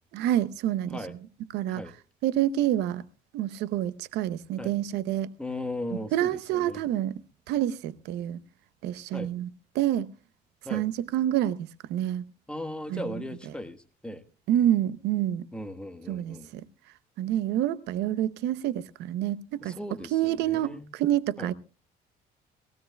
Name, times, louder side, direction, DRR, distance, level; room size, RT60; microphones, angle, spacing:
voice 1, 0.1-1.0 1.5-1.8 2.2-3.0 3.3-5.3 6.1-7.2 7.5-8.4 8.8-9.5 9.7-10.1 10.7-12.2 12.9-13.1 14.5-15.5 16.1-16.6 17.2-19.8 20.1-21.5, right 12 dB, 85° right, 0.7 m, -27 dB
voice 2, 5.4-6.8 9.1-9.3 10.6-10.8 12.5-14.2 15.5-16.5 19.6-20.8 21.4-21.5, left 1 dB, 5° left, 1.3 m, -37 dB
20.5 x 16.0 x 2.2 m
cardioid pair, 110°, 17 cm